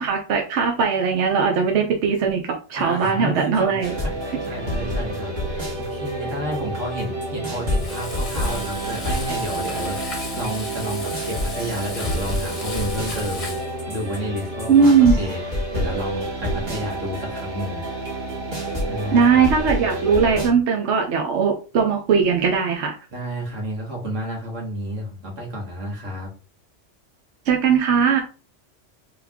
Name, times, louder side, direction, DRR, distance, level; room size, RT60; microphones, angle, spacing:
voice 1, 0.0-4.0 14.7-15.2 19.1-23.0 27.5-28.2, right 6 dB, 70° right, 2 dB, 1.0 m, -19 dB
voice 2, 2.8-13.6 13.9-15.4 15.7-17.8 18.9-19.4 23.1-26.3, equal, 85° right, -1 dB, 2.0 m, -31 dB
sound 1, 3.8-20.5, equal, 40° right, 1.7 m, -28 dB
Frying (food), 7.7-13.7, left 3 dB, 30° left, 0.9 m, -35 dB
3.5 x 3.1 x 3.5 m, 0.34 s
omnidirectional pair, 1.3 m